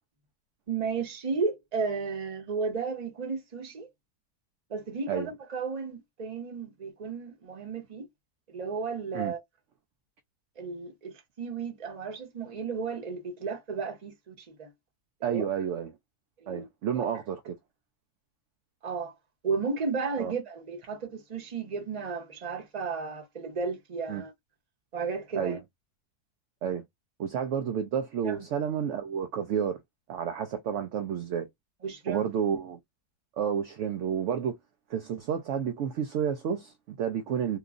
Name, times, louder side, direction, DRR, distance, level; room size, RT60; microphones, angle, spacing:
voice 1, 0.7-3.9 4.7-8.1 8.5-9.4 10.6-14.7 15.3-15.5 16.4-16.7 17.0-17.1 18.8-19.1 19.4-24.3 24.9-25.6 28.2-28.5 31.8-32.3, right 5 dB, 35° right, 0.8 m, -33 dB
voice 2, 15.2-15.9 16.5-17.5 20.2-20.3 24.1-24.2 25.3-25.6 26.6-26.8 27.2-29.8 30.1-31.5 32.1-32.8 33.4-34.5 34.9-37.6, right 8 dB, 70° right, 0.7 m, -30 dB
2.9 x 2.4 x 2.4 m
omnidirectional pair, 1.7 m